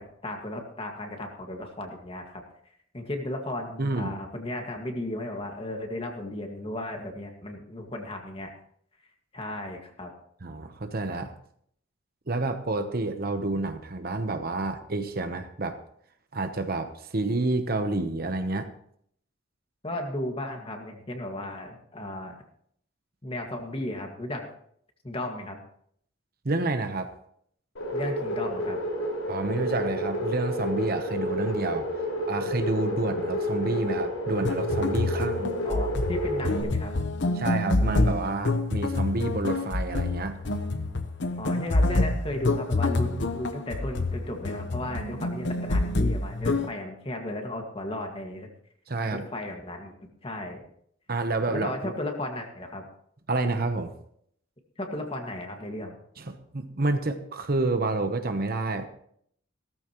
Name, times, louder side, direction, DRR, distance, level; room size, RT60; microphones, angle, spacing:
voice 1, 0.0-2.4 2.9-8.5 9.3-10.1 19.8-22.3 23.2-24.5 25.0-25.6 27.9-28.8 35.1-35.3 35.6-37.0 41.4-48.5 49.1-50.7 51.5-52.9 54.8-56.0, left 1 dB, 25° left, 3 dB, 1.9 m, -35 dB
voice 2, 3.8-4.2 10.4-11.3 12.3-15.8 16.3-18.7 26.4-27.1 29.3-31.9 32.3-35.5 37.3-40.4 48.9-49.3 51.1-51.9 53.3-53.9 56.2-58.9, right 2 dB, 45° right, 8 dB, 1.0 m, -29 dB
sound 1, 27.8-36.6, equal, 90° left, 5.1 m, -30 dB
sound 2, 34.3-46.7, left 2 dB, 60° left, 1.0 m, -27 dB
16.0 x 14.0 x 3.1 m, 0.67 s
head